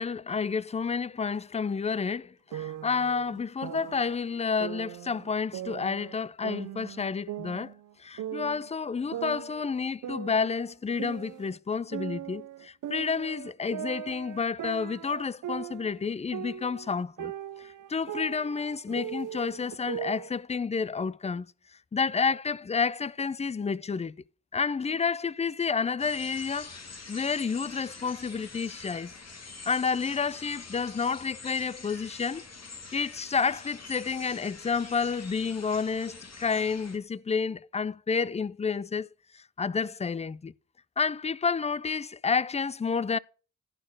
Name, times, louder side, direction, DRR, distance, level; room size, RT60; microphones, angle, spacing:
voice 1, 0.0-7.7 8.0-17.3 17.6-21.5 21.9-24.1 24.5-26.8 27.1-29.1 29.7-32.4 32.9-39.1 39.3-40.5 41.0-43.2, left 5 dB, 20° left, 0.3 m, -30 dB
sound 1, 2.5-4.2 4.6-6.2 6.4-8.7 9.1-11.6 11.9-16.0 16.3-20.3, right 11 dB, 85° right, 0.5 m, -39 dB
sound 2, 26.0-37.0, left 4 dB, 55° left, 1.8 m, -45 dB
11.5 x 4.4 x 5.9 m
cardioid pair, 45°, 31 cm